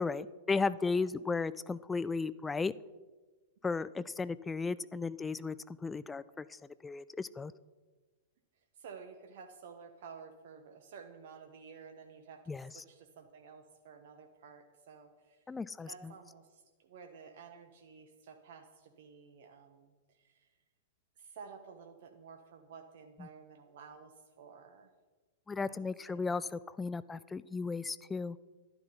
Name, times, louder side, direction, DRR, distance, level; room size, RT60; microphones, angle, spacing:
voice 1, 0.0-2.7 3.6-5.6 5.8-7.5 12.5-12.6 15.5-15.9 25.5-28.4, left 4 dB, 15° left, 18 dB, 0.3 m, -35 dB
voice 2, 8.5-15.5 15.9-20.6 21.2-24.9 25.7-26.3, right 6 dB, 60° right, 6 dB, 1.1 m, -53 dB
11.5 x 11.0 x 5.5 m, 1.3 s
figure-of-eight pair, 100°, 0 cm